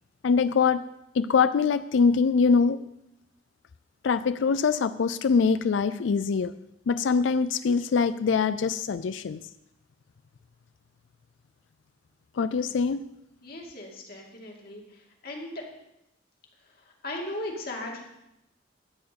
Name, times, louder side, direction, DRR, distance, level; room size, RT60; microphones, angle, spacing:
voice 1, 0.2-0.8 1.2-2.8 4.0-6.5 6.9-9.4 12.4-13.0, left 5 dB, 85° left, 13 dB, 0.4 m, -23 dB
voice 2, 13.4-14.8 15.2-15.7 17.0-18.0, left 1 dB, 55° left, 0 dB, 2.4 m, -37 dB
13.5 x 4.6 x 8.4 m, 0.84 s
head